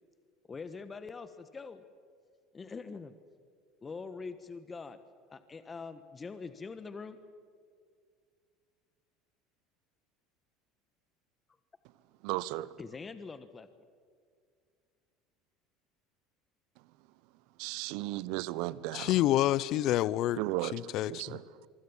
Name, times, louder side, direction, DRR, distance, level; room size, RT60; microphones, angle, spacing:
voice 1, 0.5-1.8 2.5-3.1 3.8-5.0 5.3-7.2 12.8-13.7, left 4 dB, 25° left, 1.3 m, -43 dB
voice 2, 12.2-12.7 17.6-19.2 20.4-21.7, right 17 dB, 65° right, 0.9 m, -35 dB
voice 3, 18.9-20.4 20.7-21.4, left 14 dB, 55° left, 0.7 m, -28 dB
26.0 x 24.0 x 7.3 m
hypercardioid pair, 75°, 0 cm